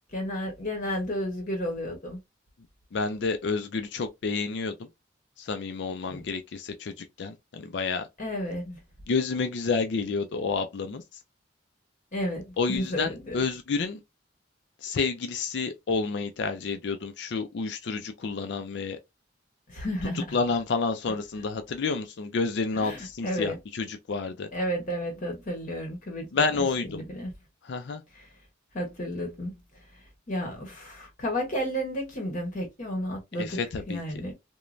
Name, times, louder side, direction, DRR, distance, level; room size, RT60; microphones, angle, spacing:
voice 1, 0.1-2.2 6.1-6.2 8.2-8.8 12.1-13.3 19.7-20.4 22.7-23.6 24.5-26.3 26.5-27.3 28.1-28.3 28.7-29.5 29.9-33.6 33.9-34.3, equal, 40° left, 0.8 m, -32 dB
voice 2, 2.9-4.8 5.4-8.1 9.1-11.0 12.6-14.0 14.8-19.0 20.3-24.5 26.3-27.0 27.6-28.0 33.4-34.0, left 4 dB, 60° left, 0.4 m, -29 dB
3.0 x 2.1 x 2.4 m
head